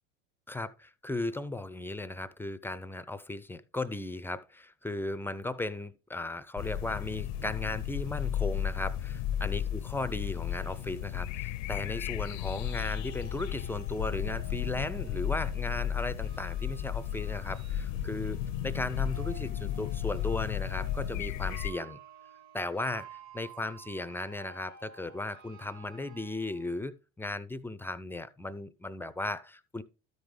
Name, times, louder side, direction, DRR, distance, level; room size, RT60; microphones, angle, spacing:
voice 1, 0.5-22.0 22.5-23.1 23.3-29.8, left 2 dB, 5° left, 0.3 m, -36 dB
sound 1, 6.6-21.7, left 10 dB, 70° left, 0.6 m, -34 dB
sound 2, 12.3-26.8, right 6 dB, 45° right, 0.9 m, -53 dB
13.0 x 5.4 x 3.2 m
hypercardioid pair, 80°, 40 cm